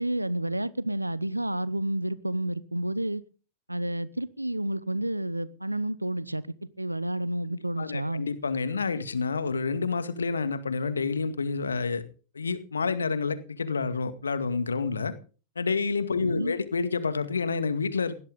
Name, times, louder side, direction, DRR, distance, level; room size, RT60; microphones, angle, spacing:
voice 1, 0.0-3.2 3.7-6.4 6.8-8.3 16.2-16.5, right 1 dB, 85° right, 0.8 m, -30 dB
voice 2, 7.8-12.0 12.3-15.1 15.6-18.2, left 4 dB, 75° left, 2.1 m, -28 dB
20.0 x 17.5 x 3.8 m
figure-of-eight pair, 90°, 0 cm